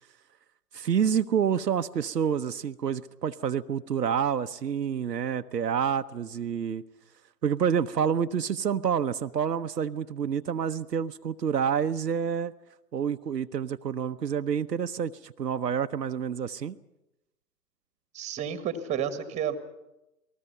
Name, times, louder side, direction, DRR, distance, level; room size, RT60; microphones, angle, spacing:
voice 1, 0.7-6.8 7.4-12.5 12.9-16.8, right 7 dB, 80° right, 9 dB, 0.9 m, -28 dB
voice 2, 18.1-19.6, right 8 dB, 15° right, 11 dB, 1.5 m, -31 dB
28.5 x 19.5 x 5.7 m, 0.95 s
figure-of-eight pair, 125°, 49 cm